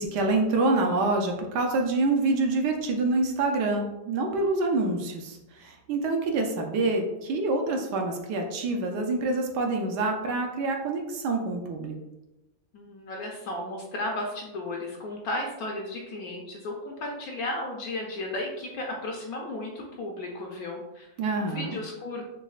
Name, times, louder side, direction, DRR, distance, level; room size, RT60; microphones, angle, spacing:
voice 1, 0.0-11.9 21.2-21.8, right 3 dB, 75° right, 2 dB, 1.1 m, -26 dB
voice 2, 12.7-21.1 21.4-22.2, left 2 dB, 70° left, 0 dB, 0.9 m, -34 dB
6.0 x 2.1 x 2.4 m, 0.94 s
omnidirectional pair, 1.9 m